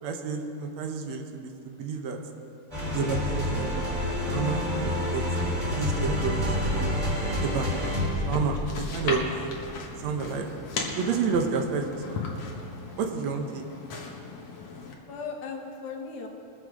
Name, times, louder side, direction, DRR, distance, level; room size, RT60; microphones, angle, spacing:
voice 1, 0.0-2.2 2.9-3.9 4.3-5.2 5.7-6.9 7.4-7.7 8.2-9.3 10.0-10.5 11.0-12.2 13.0-13.6, right 5 dB, 70° right, 4 dB, 2.2 m, -30 dB
sound 1, 2.7-11.3, left 1 dB, 10° right, 3.3 m, -29 dB
sound 2, 7.8-14.9, left 4 dB, 70° left, 2.6 m, -37 dB
voice 2, 12.5-13.0 15.1-16.3, left 5 dB, 90° left, 0 dB, 2.9 m, -38 dB
22.0 x 7.9 x 5.1 m, 2.8 s
omnidirectional pair, 3.3 m